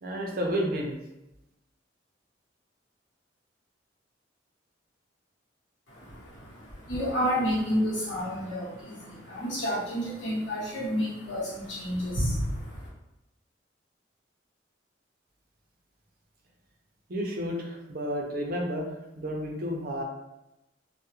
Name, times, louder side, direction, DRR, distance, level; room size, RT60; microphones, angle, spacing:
voice 1, 0.0-1.0 17.1-18.9 19.2-20.0, equal, 50° right, 0 dB, 0.5 m, -31 dB
voice 2, 5.9-12.9, equal, 75° left, -7 dB, 1.0 m, -30 dB
2.3 x 2.1 x 2.9 m, 0.92 s
head